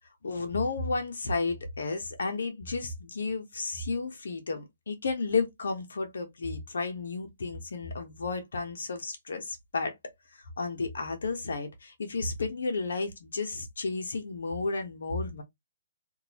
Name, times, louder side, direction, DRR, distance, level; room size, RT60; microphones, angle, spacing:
voice 1, 0.2-9.9 10.6-15.4, left 4 dB, 80° left, 1.2 m, -32 dB
3.7 x 2.7 x 3.0 m
hypercardioid pair, 150°, 0 cm